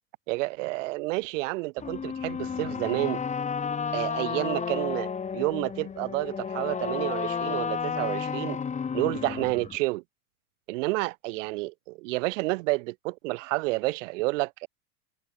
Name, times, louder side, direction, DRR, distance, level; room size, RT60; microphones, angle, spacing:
voice 1, 0.3-3.2 3.9-8.6 8.9-10.0 10.7-14.7, right 23 dB, 60° right, 2.8 m, -30 dB
sound 1, 1.8-9.8, left 6 dB, 15° left, 4.8 m, -32 dB
supercardioid pair, 145°, 42 cm